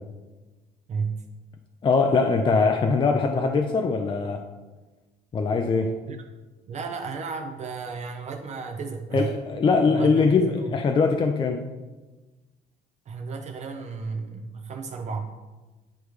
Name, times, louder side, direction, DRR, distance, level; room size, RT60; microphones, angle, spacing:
voice 1, 0.9-1.3 6.1-6.2 6.7-9.3 9.9-10.7 13.1-15.3, right 5 dB, 40° right, 4 dB, 0.6 m, -33 dB
voice 2, 1.8-4.4 5.3-5.9 9.1-11.6, left 4 dB, 30° left, 4 dB, 0.5 m, -22 dB
10.0 x 3.4 x 3.2 m, 1.2 s
cardioid pair, 110°, 17 cm